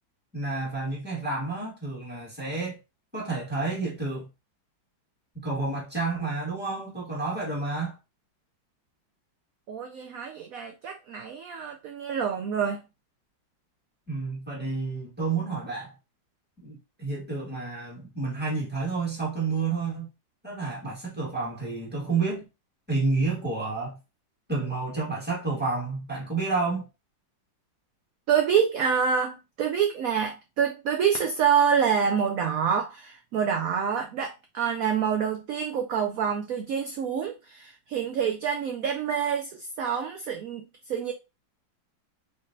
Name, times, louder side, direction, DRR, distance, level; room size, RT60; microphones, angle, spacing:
voice 1, 0.3-2.8 3.1-4.3 5.3-8.0 14.1-15.9 16.6-20.1 20.4-22.5 22.9-24.0 24.5-26.9, right 3 dB, 5° right, 1.6 m, -30 dB
voice 2, 9.7-12.8 28.3-41.1, right 7 dB, 80° right, 0.7 m, -27 dB
3.7 x 3.7 x 2.6 m
omnidirectional pair, 2.0 m